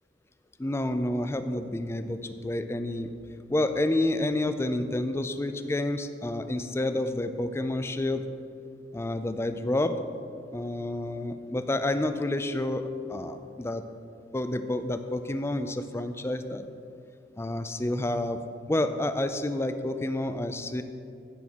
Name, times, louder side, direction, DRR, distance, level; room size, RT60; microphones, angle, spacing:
voice 1, 0.6-3.1 3.5-8.2 8.9-9.9 10.5-13.8 14.3-16.6 17.4-18.4 18.7-20.8, left 1 dB, 15° left, 9 dB, 0.4 m, -29 dB
16.0 x 6.1 x 3.6 m, 2.5 s
head